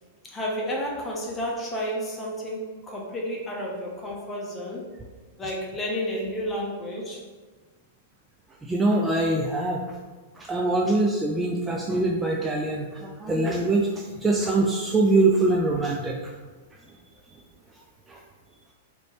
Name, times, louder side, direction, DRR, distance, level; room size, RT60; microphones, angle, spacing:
voice 1, 0.2-4.8 5.4-7.2, equal, 15° left, -2 dB, 1.0 m, -31 dB
voice 2, 8.6-9.8 10.4-16.3 18.1-18.2, right 2 dB, 15° right, 0 dB, 0.4 m, -23 dB
4.0 x 3.1 x 3.2 m, 1.3 s
hypercardioid pair, 120°, 0 cm